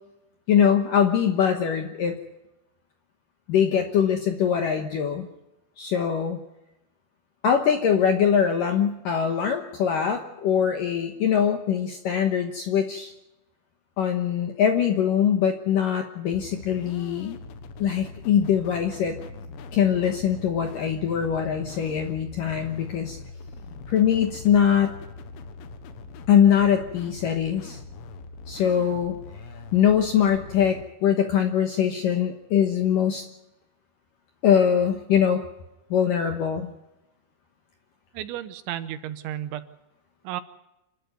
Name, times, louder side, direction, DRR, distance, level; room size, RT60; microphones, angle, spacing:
voice 1, 0.5-2.2 3.5-5.3 5.8-6.4 7.4-13.1 14.0-17.4 17.8-19.2 19.7-23.2 23.9-24.9 26.3-27.8 28.5-29.2 29.7-33.3 34.4-35.4 35.9-36.7, left 8 dB, 70° left, 5 dB, 2.1 m, -22 dB
sound 1, 16.3-30.8, left 3 dB, 85° left, 3.9 m, -42 dB
voice 2, 38.1-39.7 40.2-40.4, right 12 dB, 75° right, 12 dB, 3.1 m, -33 dB
27.5 x 12.5 x 9.3 m, 0.92 s
omnidirectional pair, 5.6 m